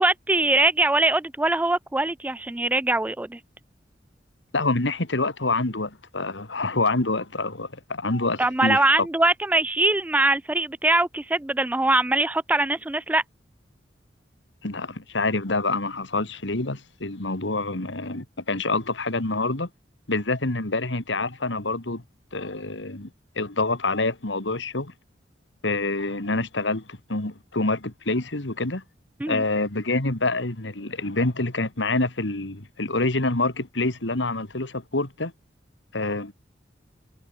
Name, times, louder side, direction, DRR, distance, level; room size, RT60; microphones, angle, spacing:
voice 1, 0.0-3.4 8.4-13.2 29.2-29.4, right 2 dB, 10° right, 0.4 m, -22 dB
voice 2, 4.5-9.1 14.6-19.7 20.1-22.0 22.3-23.1 23.4-24.9 25.6-28.8 29.3-35.3 35.9-36.3, left 2 dB, 85° left, 2.6 m, -26 dB
head